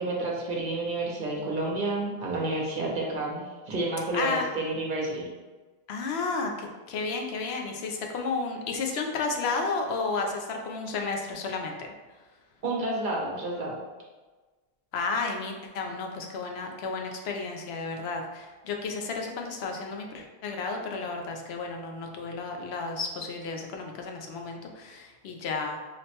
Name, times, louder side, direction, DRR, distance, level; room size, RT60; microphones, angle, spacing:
voice 1, 0.0-5.3 12.6-13.8, right 2 dB, 50° right, -2 dB, 0.9 m, -30 dB
voice 2, 4.1-4.4 5.9-11.9 14.9-25.8, left 4 dB, 75° left, 2 dB, 0.8 m, -32 dB
4.9 x 2.1 x 2.8 m, 1.3 s
omnidirectional pair, 1.1 m